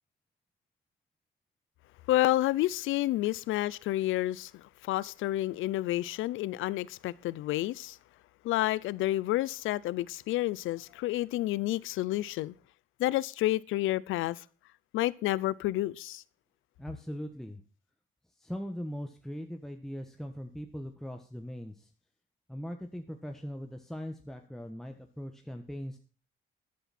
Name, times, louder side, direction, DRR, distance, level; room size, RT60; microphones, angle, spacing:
voice 1, 2.1-8.0 8.4-12.5 13.0-14.4 14.9-16.2, left 16 dB, 90° left, 0.6 m, -30 dB
voice 2, 16.8-17.6 18.4-21.9 22.5-26.0, equal, ahead, 1.4 m, -40 dB
14.0 x 10.0 x 4.3 m
cardioid pair, 90°, 20 cm